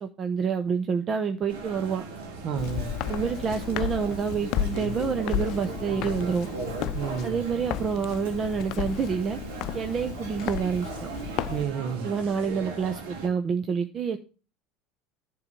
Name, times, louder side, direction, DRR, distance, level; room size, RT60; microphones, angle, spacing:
voice 1, 0.0-2.0 3.1-6.5 7.2-9.4 9.7-10.9 12.0-14.2, right 6 dB, 40° right, 0.9 m, -28 dB
sound 1, 1.5-13.3, right 4 dB, 75° right, 2.2 m, -38 dB
voice 2, 2.4-3.0 6.9-7.4 11.5-12.1, right 7 dB, 55° right, 1.3 m, -30 dB
Walk footsteps, 2.6-11.6, left 11 dB, 60° left, 0.6 m, -33 dB
11.0 x 3.9 x 7.1 m
hypercardioid pair, 85°, 0 cm